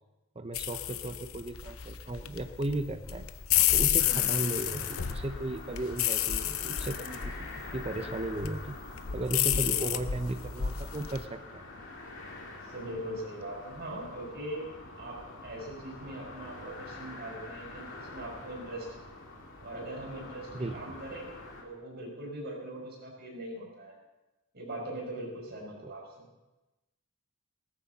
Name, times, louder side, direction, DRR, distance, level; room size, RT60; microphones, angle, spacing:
voice 1, 0.4-3.3 3.7-8.8 9.1-11.6 20.5-21.0 25.8-25.9, right 2 dB, 30° right, 8 dB, 0.7 m, -36 dB
sound 1, 0.5-11.2, left 11 dB, 75° left, 0.7 m, -31 dB
sound 2, 4.0-21.6, left 2 dB, 60° left, 2.8 m, -46 dB
voice 2, 9.5-10.0 12.7-14.7 15.0-18.9 19.6-21.3 21.6-24.0 24.5-26.3, right 1 dB, 50° right, -2 dB, 5.8 m, -41 dB
19.0 x 14.0 x 4.1 m, 1.0 s
head